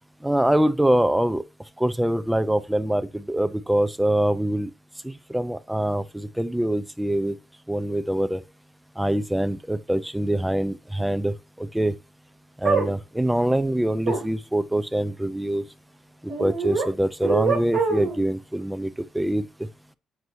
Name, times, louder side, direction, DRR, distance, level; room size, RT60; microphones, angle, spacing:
voice 1, 0.2-1.4 1.8-4.7 5.0-7.3 7.7-8.4 9.0-11.9 12.6-15.6 16.4-19.7, right 1 dB, 5° right, 0.5 m, -24 dB
sound 1, 12.6-12.9 14.1-14.2 16.3-16.9 17.2-18.2, right 4 dB, 75° right, 2.1 m, -24 dB
7.9 x 4.7 x 2.7 m
cardioid pair, 95°, 0 cm